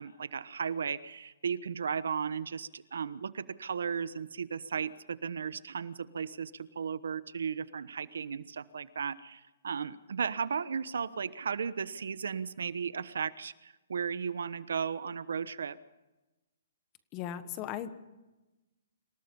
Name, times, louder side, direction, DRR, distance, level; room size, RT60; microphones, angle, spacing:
voice 1, 0.0-15.8, right 6 dB, 80° right, 15 dB, 1.1 m, -35 dB
voice 2, 17.1-17.9, left 10 dB, 25° left, 12 dB, 1.4 m, -37 dB
27.0 x 17.5 x 5.5 m, 1.0 s
hypercardioid pair, 165°, 0 cm